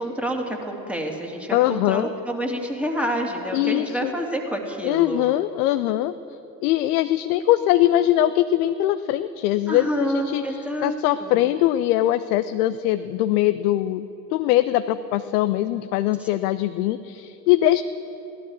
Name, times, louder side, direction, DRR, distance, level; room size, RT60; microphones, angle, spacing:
voice 1, 0.0-5.3 9.7-10.9 11.2-11.5 16.2-16.3, equal, 5° right, 1 dB, 2.5 m, -28 dB
voice 2, 1.5-2.1 3.5-4.1 4.8-6.1 6.6-17.8, left 14 dB, 70° left, 12 dB, 0.6 m, -22 dB
16.5 x 12.0 x 6.4 m, 3.0 s
figure-of-eight pair, 55°, 47 cm